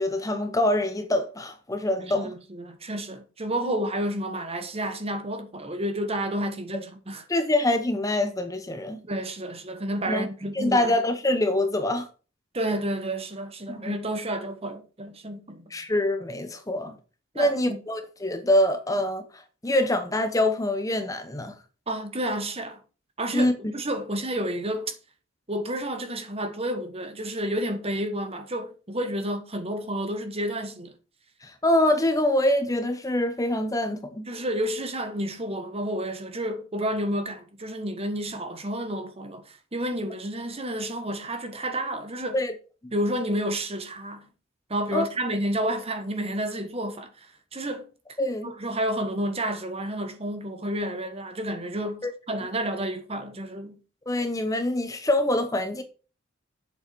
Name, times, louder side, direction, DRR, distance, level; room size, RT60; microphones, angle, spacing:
voice 1, 0.0-2.3 3.6-3.7 7.3-9.0 10.1-10.3 10.6-12.1 13.7-14.0 15.7-16.9 17.4-19.2 19.6-21.6 23.3-23.7 31.4-34.3 42.3-42.5 44.9-45.0 48.2-48.5 52.0-52.1 54.1-55.8, left 1 dB, 15° left, 0.9 m, -25 dB
voice 2, 2.1-7.2 9.0-10.9 12.5-15.6 17.3-17.8 18.9-19.0 21.9-22.8 23.2-25.0 25.5-30.9 34.3-42.4 42.9-44.3 44.7-47.3 47.5-47.9 48.4-53.8, right 1 dB, 30° right, 1.4 m, -30 dB
7.9 x 7.1 x 4.5 m
head